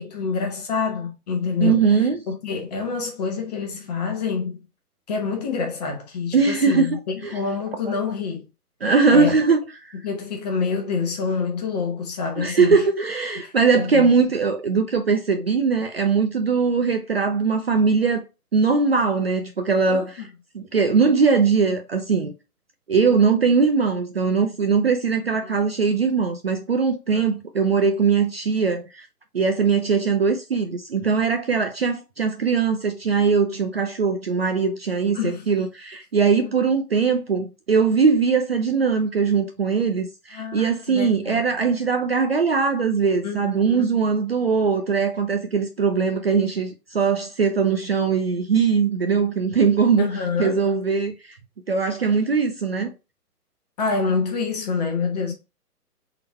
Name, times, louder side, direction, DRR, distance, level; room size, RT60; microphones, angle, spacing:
voice 1, 0.0-1.9 2.3-4.6 5.1-8.4 9.1-9.4 10.0-12.8 13.4-14.1 19.9-20.3 25.4-25.5 27.1-27.3 35.1-35.5 40.3-41.4 43.2-43.9 50.0-50.6 53.8-55.3, left 5 dB, 25° left, 1.0 m, -27 dB
voice 2, 1.6-2.2 6.3-7.3 8.8-9.9 12.4-18.2 18.5-20.2 20.5-22.3 22.9-29.1 29.3-51.4 51.7-52.9, right 5 dB, 40° right, 0.5 m, -21 dB
3.9 x 3.2 x 4.1 m
figure-of-eight pair, 135°, 47 cm